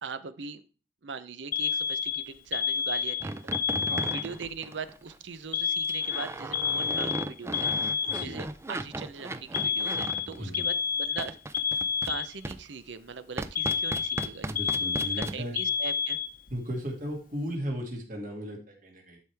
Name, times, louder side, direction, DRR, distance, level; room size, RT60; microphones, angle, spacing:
voice 1, 0.0-0.6 1.0-3.6 4.1-11.4 12.0-14.5 14.8-16.2, right 5 dB, 90° right, 13 dB, 0.7 m, -40 dB
Alarm, 1.5-4.5 5.5-8.5 9.5-12.5 13.5-16.5, left 7 dB, 50° left, 0.8 m, -29 dB
sound 1, 3.2-5.2 5.8-10.4 11.2-12.2 12.4-12.6 13.4-15.3, right 2 dB, 15° right, 0.4 m, -36 dB
voice 2, 8.1-8.4 10.4-10.7 14.5-15.6 16.5-19.2, equal, 45° right, 0 dB, 2.3 m, -36 dB
12.0 x 4.8 x 3.5 m, 0.36 s
head